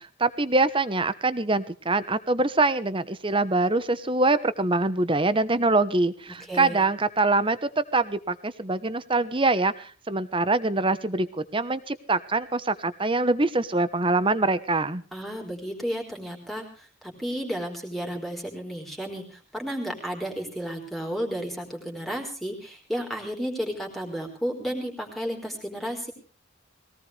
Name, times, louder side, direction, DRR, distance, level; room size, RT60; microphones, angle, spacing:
voice 1, 0.0-15.0, right 2 dB, 25° right, 14 dB, 1.1 m, -24 dB
voice 2, 6.5-6.9 15.1-26.1, equal, ahead, 1 dB, 4.1 m, -32 dB
21.5 x 18.5 x 3.4 m, 0.38 s
head